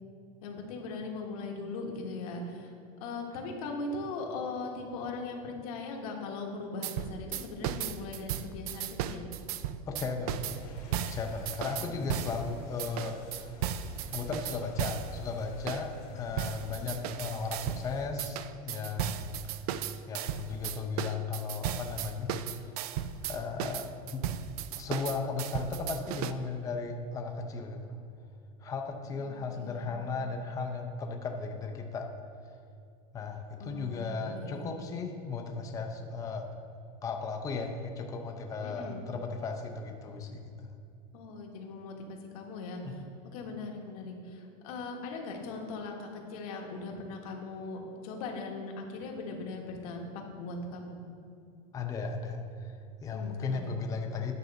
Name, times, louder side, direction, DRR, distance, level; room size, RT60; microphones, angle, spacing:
voice 1, 0.4-2.7 3.0-9.3 11.7-12.3 16.7-16.9 29.0-29.9 33.6-34.7 38.6-39.0 41.1-43.0 43.3-50.1 50.4-51.0 53.1-53.7, left 3 dB, 70° left, 1 dB, 1.5 m, -40 dB
sound 1, 6.8-12.4 12.8-15.1 15.7-15.8 16.4-17.9 18.2-26.3, right 10 dB, 80° right, 0.5 m, -35 dB
voice 2, 9.9-10.7 11.1-13.6 14.1-19.4 20.1-22.3 23.3-24.2 24.8-28.0 28.6-32.1 33.1-36.5 37.0-40.7 42.8-43.0 51.7-54.4, left 4 dB, 20° left, 3 dB, 0.5 m, -36 dB
sound 2, 10.4-18.1, left 2 dB, 90° left, 2.0 m, -50 dB
9.3 x 3.8 x 6.9 m, 2.5 s
supercardioid pair, 155°, 19 cm